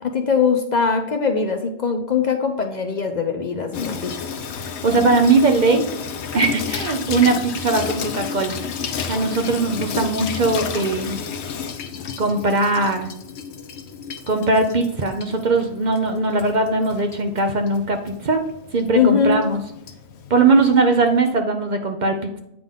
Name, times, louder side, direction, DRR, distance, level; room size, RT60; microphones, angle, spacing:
voice 1, 0.0-4.3 18.9-19.4, left 6 dB, 50° left, 4 dB, 0.7 m, -21 dB
Water tap faucet / Sink (filling or washing), 3.7-21.2, left 6 dB, 80° left, 1.0 m, -32 dB
voice 2, 4.8-5.9 6.3-8.6 8.9-11.2 12.2-13.1 14.3-18.4 18.7-19.6 20.3-22.4, right 3 dB, 50° right, 5 dB, 0.8 m, -20 dB
8.5 x 3.7 x 3.6 m, 0.82 s
omnidirectional pair, 1.1 m